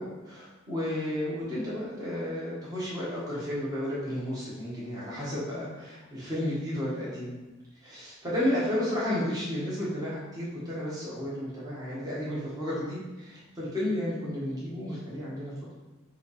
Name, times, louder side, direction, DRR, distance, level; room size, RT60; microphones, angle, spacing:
voice 1, 0.0-7.3 7.8-15.5, left 1 dB, 20° right, -8 dB, 1.6 m, -32 dB
7.8 x 2.9 x 5.0 m, 1.1 s
head